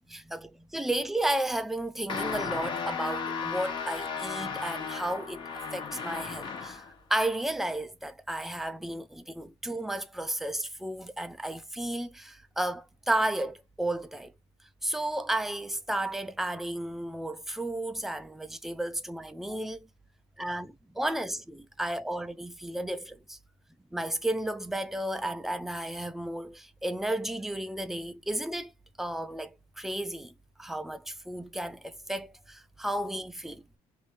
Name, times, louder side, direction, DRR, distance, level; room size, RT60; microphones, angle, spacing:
voice 1, 0.1-5.4 5.7-6.8 7.1-14.3 14.8-19.9 20.4-23.4 23.9-28.7 29.0-30.3 30.6-33.6, right 1 dB, 5° right, 0.4 m, -33 dB
sound 1, 2.1-6.9, left 5 dB, 40° left, 1.2 m, -35 dB
2.9 x 2.7 x 4.3 m
cardioid pair, 130°, 12 cm